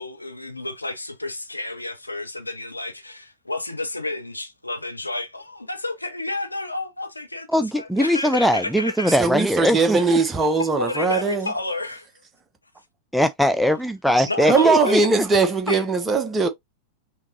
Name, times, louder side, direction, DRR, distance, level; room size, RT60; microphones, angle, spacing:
voice 1, 0.0-9.2 10.0-10.1 10.4-12.1 14.3-15.1 15.7-15.9, left 2 dB, 85° left, 0.8 m, -30 dB
voice 2, 7.5-10.2 13.1-15.2, equal, ahead, 0.4 m, -21 dB
voice 3, 9.1-11.5 14.2-16.5, right 4 dB, 15° right, 1.1 m, -20 dB
5.7 x 3.1 x 2.9 m
figure-of-eight pair, 90°, 0 cm